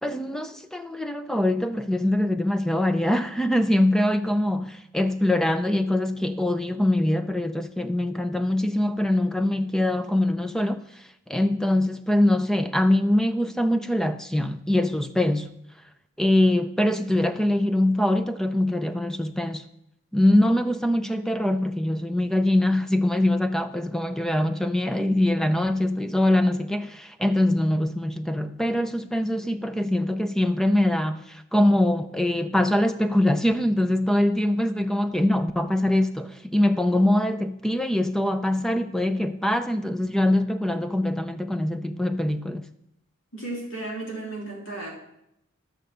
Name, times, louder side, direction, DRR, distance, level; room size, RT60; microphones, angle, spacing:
voice 1, 0.0-15.5 16.2-19.6 20.1-42.7, left 1 dB, ahead, 0.5 m, -23 dB
voice 2, 43.3-44.9, right 2 dB, 65° left, 3.6 m, -34 dB
12.5 x 6.4 x 6.6 m
head